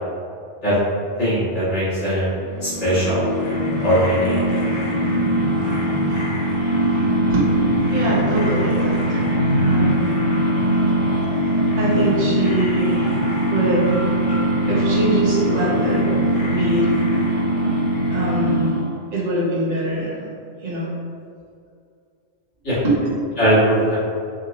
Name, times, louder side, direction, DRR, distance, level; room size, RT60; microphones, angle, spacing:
voice 1, 1.2-3.3 3.8-4.4 22.6-22.8 23.4-24.0, equal, 85° left, -12 dB, 2.0 m, -20 dB
sound 1, 2.4-19.1, right 1 dB, 60° left, 0.9 m, -21 dB
voice 2, 7.9-9.2 9.6-10.3 11.8-13.1 13.5-13.9 14.7-16.0 16.5-16.9 18.1-18.8 19.1-20.3 20.6-20.9 22.8-22.9, right 1 dB, 40° right, -8 dB, 1.1 m, -24 dB
5.0 x 2.1 x 2.9 m, 2.3 s
omnidirectional pair, 1.2 m